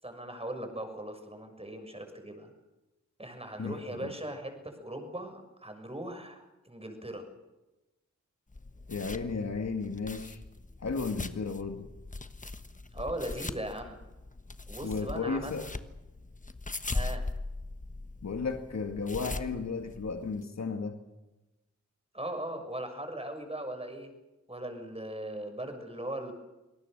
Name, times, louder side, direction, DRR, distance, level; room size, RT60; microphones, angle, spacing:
voice 1, 0.0-2.5 3.2-7.2 12.9-14.0 14.7-15.6 16.9-17.2 22.1-24.1 24.5-26.3, right 1 dB, 20° right, 5 dB, 6.6 m, -39 dB
voice 2, 3.6-4.1 8.9-10.4 10.8-11.9 14.8-15.7 18.2-21.0, left 4 dB, 65° left, 5 dB, 2.0 m, -34 dB
sound 1, 8.5-20.4, left 2 dB, 25° left, 1.3 m, -40 dB
27.5 x 19.0 x 6.7 m, 1.0 s
cardioid pair, 55°, 29 cm